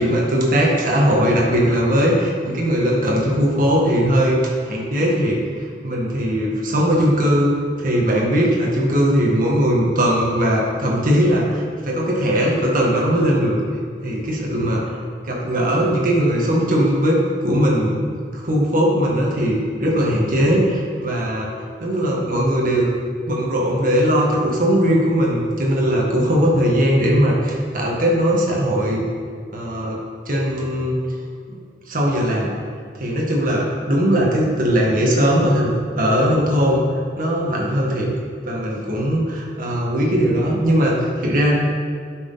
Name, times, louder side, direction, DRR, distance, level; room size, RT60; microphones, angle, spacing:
voice 1, 0.0-7.5 7.8-13.6 14.0-14.9 15.2-21.5 21.8-22.9 23.3-29.0 29.5-30.0 30.3-31.0 31.5-31.6 31.9-32.5 32.9-36.8 37.2-38.1 38.4-41.7, equal, 50° right, -3 dB, 1.9 m, -19 dB
10.5 x 6.3 x 4.1 m, 2.2 s
head